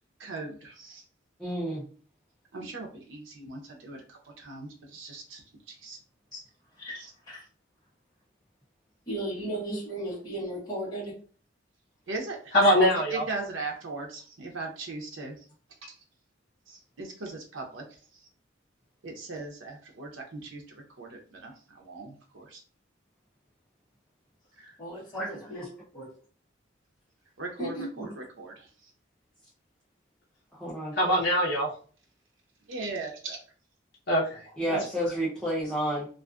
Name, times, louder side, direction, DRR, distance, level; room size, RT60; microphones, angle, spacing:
voice 1, 0.2-1.0 2.5-6.0 12.1-15.5 15.8-16.0 16.7-18.3 19.0-22.6 24.5-24.8 27.4-28.9 32.7-33.4, right 3 dB, 85° right, 0.7 m, -38 dB
voice 2, 1.4-1.8 9.7-9.8 25.1-25.3 25.5-25.6 30.5-31.0 34.6-36.1, right 1 dB, 5° left, 0.5 m, -30 dB
voice 3, 6.8-7.4 9.1-11.1 12.6-12.7 24.8-25.6 25.9-26.1 27.6-28.0, right 1 dB, 20° left, 1.1 m, -36 dB
voice 4, 12.5-13.2 30.9-31.7 34.1-34.8, equal, 60° left, 0.8 m, -23 dB
2.5 x 2.4 x 2.3 m
head